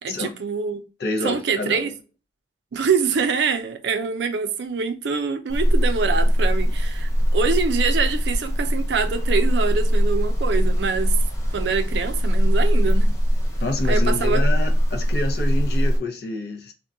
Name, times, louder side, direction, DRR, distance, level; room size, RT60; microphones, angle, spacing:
voice 1, 0.0-0.8 1.2-1.9 2.7-11.2 11.5-13.1 13.9-14.4, right 5 dB, 80° right, 0.4 m, -25 dB
voice 2, 1.0-1.9 13.6-16.7, left 2 dB, 60° left, 0.5 m, -28 dB
sound 1, 5.5-16.0, equal, 15° left, 0.6 m, -21 dB
2.3 x 2.1 x 3.6 m
head